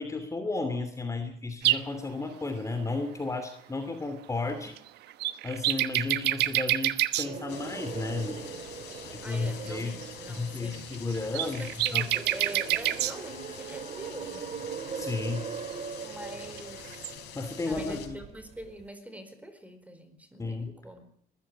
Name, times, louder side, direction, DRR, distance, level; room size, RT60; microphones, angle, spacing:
voice 1, 0.0-4.8 5.4-8.4 9.1-10.0 10.3-11.7 11.9-12.1 14.9-15.5 17.3-18.2 20.4-20.7, left 3 dB, 20° left, 8 dB, 2.8 m, -33 dB
sound 1, 1.6-1.8 4.7-4.8 5.1-7.3 9.4-9.5 9.7-9.8 10.0-10.1 10.7-13.1 16.6-16.7 16.9-17.1, right 15 dB, 80° right, 1.2 m, -27 dB
sound 2, 7.3-18.9, right 6 dB, 45° right, 2.1 m, -41 dB
sound 3, 7.5-18.1, left 10 dB, 85° left, 4.6 m, -46 dB
voice 2, 9.2-10.9 11.3-14.6 16.0-17.1 17.6-21.1, right 1 dB, 10° right, 9 dB, 4.5 m, -44 dB
21.0 x 14.5 x 8.8 m, 0.66 s
cardioid pair, 110°, 17 cm